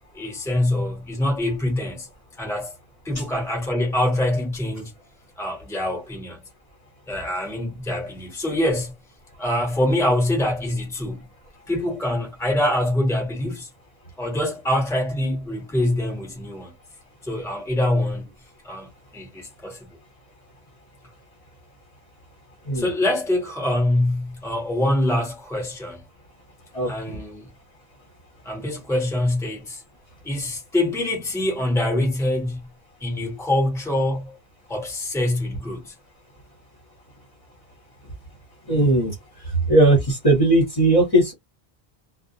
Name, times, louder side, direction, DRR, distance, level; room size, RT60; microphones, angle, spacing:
voice 1, 0.1-2.1 2.4-2.7 3.0-4.9 5.4-6.4 7.1-8.9 9.4-11.3 11.7-13.7 14.2-16.7 17.2-18.3 18.6-19.9 22.7-26.0 26.9-27.5 28.4-29.8 30.2-32.6 33.0-34.4 34.7-35.9, left 1 dB, 5° left, 1.0 m, -24 dB
voice 2, 26.7-27.2 38.7-39.1 39.5-41.3, right 2 dB, 35° left, 1.1 m, -18 dB
2.3 x 2.2 x 2.7 m
omnidirectional pair, 1.1 m